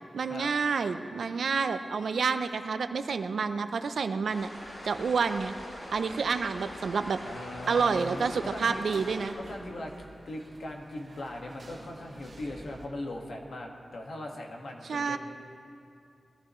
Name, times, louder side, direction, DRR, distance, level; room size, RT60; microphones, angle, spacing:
voice 1, 0.1-4.5 4.8-5.6 5.9-7.2 7.7-9.3 14.9-15.2, right 5 dB, 85° right, 9 dB, 0.6 m, -29 dB
sound 1, 4.3-9.3, equal, 50° left, 4.0 m, -43 dB
sound 2, 4.6-12.9, right 2 dB, 40° right, 1.5 m, -51 dB
voice 2, 7.2-8.8 9.5-9.9 10.2-15.2, left 1 dB, 75° left, 0 dB, 1.7 m, -39 dB
21.5 x 14.5 x 3.1 m, 2.5 s
wide cardioid pair, 125°, 0 cm